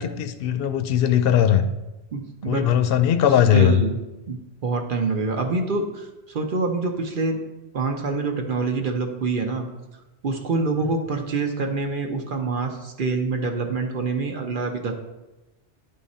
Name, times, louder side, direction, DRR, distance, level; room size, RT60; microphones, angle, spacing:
voice 1, 0.0-1.6 2.5-3.8, left 9 dB, 65° left, 10 dB, 0.7 m, -19 dB
voice 2, 2.1-2.7 3.2-4.0 4.3-7.4 7.7-9.7 10.2-14.9, right 3 dB, 50° right, 4 dB, 0.9 m, -26 dB
10.0 x 3.7 x 4.2 m, 1.0 s
omnidirectional pair, 1.2 m